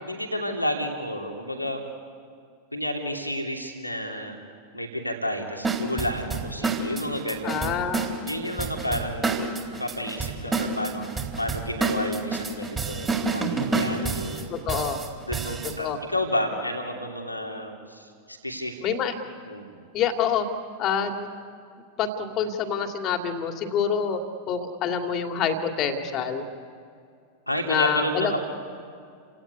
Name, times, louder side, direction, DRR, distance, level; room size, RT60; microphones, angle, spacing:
voice 1, 0.1-1.8 2.7-4.4 4.7-7.7 8.3-9.4 9.7-14.6 15.3-18.8 19.5-19.8 27.5-28.4, left 1 dB, 90° left, 1 dB, 2.8 m, -31 dB
sound 1, 5.6-15.8, right 3 dB, 15° right, 3.8 m, -28 dB
voice 2, 7.4-8.1 14.5-15.0 15.8-16.0 18.8-19.1 19.9-20.5 20.8-21.3 22.0-26.4 27.7-28.4, left 7 dB, 35° left, 5 dB, 2.6 m, -26 dB
29.0 x 18.0 x 9.7 m, 2.3 s
figure-of-eight pair, 90°, 0 cm